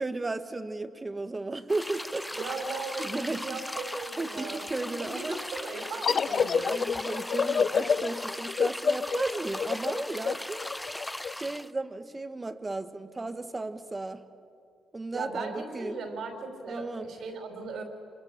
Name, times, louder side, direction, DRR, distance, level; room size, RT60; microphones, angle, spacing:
voice 1, 0.0-2.3 3.0-3.6 4.2-5.4 6.6-10.6 11.3-14.2 14.9-16.0 16.7-17.1, right 2 dB, 20° right, 10 dB, 1.4 m, -34 dB
sound 1, 1.7-11.7, left 1 dB, 5° left, 0.5 m, -38 dB
voice 2, 2.3-6.7 15.1-17.8, right 3 dB, 70° right, 5 dB, 4.7 m, -37 dB
sound 2, 6.0-11.3, left 6 dB, 50° left, 0.6 m, -28 dB
26.0 x 22.0 x 9.1 m, 2.4 s
cardioid pair, 90°, 0 cm